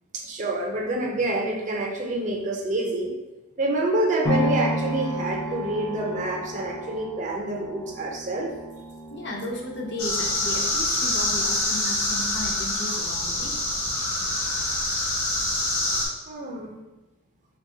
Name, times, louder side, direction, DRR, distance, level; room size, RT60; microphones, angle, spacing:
voice 1, 0.1-3.1 3.6-8.5 16.3-16.8, right 2 dB, 35° right, 0 dB, 0.5 m, -27 dB
sound 1, 4.2-12.4 12.8-12.9, equal, 15° left, 0.4 m, -33 dB
voice 2, 9.1-13.6, left 1 dB, 55° left, 0 dB, 0.6 m, -34 dB
sound 2, 10.0-16.1, left 2 dB, 90° left, 1.0 m, -26 dB
3.5 x 2.3 x 3.7 m, 1.1 s
head